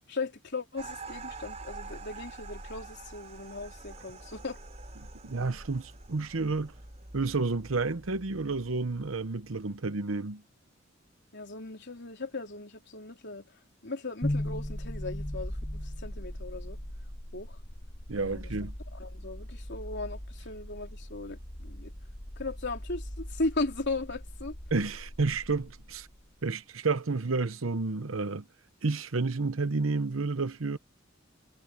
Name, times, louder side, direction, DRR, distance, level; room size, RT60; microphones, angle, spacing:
voice 1, 0.0-4.6 11.3-13.5 13.8-16.8 17.3-17.6 18.1-18.5 18.9-21.9 22.4-24.6, left 3 dB, 60° left, 3.6 m, -37 dB
sound 1, 0.8-9.7, right 3 dB, 35° right, 3.7 m, -46 dB
voice 2, 5.2-6.7 7.1-10.4 18.1-18.7 24.7-26.1 26.4-28.4 28.8-30.8, right 3 dB, 85° right, 0.9 m, -30 dB
sound 2, 14.2-26.3, left 1 dB, 30° left, 2.2 m, -39 dB
head